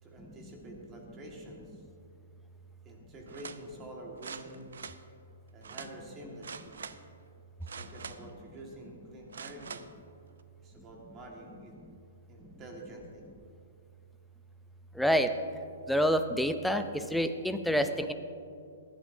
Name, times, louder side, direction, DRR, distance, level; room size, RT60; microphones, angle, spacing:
voice 1, 0.0-1.8 2.8-4.7 5.5-6.7 7.6-9.8 10.6-11.8 12.3-13.2, right 1 dB, 20° right, -1 dB, 1.7 m, -47 dB
sound 1, 3.3-3.6 4.2-5.0 5.6-5.9 6.4-7.0 7.6-8.3 9.3-9.9 10.4-10.5, right 6 dB, 90° right, 0.6 m, -44 dB
voice 2, 15.0-15.3 15.9-18.1, equal, ahead, 7 dB, 0.4 m, -27 dB
18.5 x 11.5 x 2.7 m, 2.5 s
hypercardioid pair, 165°, 0 cm